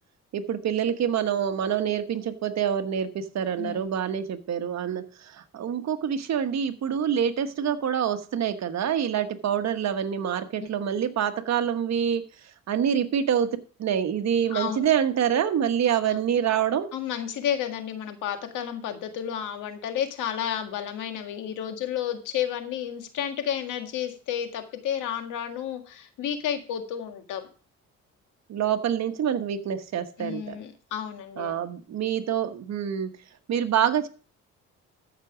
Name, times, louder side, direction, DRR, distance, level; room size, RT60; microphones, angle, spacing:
voice 1, 0.3-12.2 12.7-16.9 28.5-30.6 31.4-33.1 33.5-34.1, right 8 dB, 60° right, 9 dB, 1.3 m, -26 dB
voice 2, 3.6-3.9 10.6-10.7 14.5-14.9 16.9-27.5 30.2-31.7, left 9 dB, 85° left, 6 dB, 1.8 m, -31 dB
13.5 x 6.1 x 5.0 m, 0.38 s
cardioid pair, 90°, 30 cm